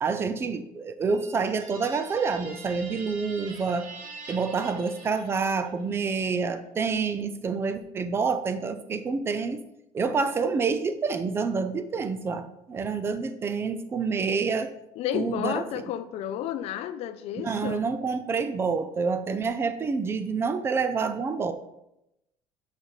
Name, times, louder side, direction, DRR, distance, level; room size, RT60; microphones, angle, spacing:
voice 1, 0.0-3.9 4.3-9.6 9.9-14.7 15.1-15.9 17.4-21.5, right 5 dB, 20° right, 11 dB, 0.3 m, -28 dB
sound 1, 1.1-5.8, right 4 dB, 65° right, 1.3 m, -44 dB
voice 2, 15.0-17.8, left 11 dB, 50° left, 13 dB, 0.4 m, -31 dB
8.7 x 5.1 x 3.1 m, 0.88 s
cardioid pair, 175°, 13 cm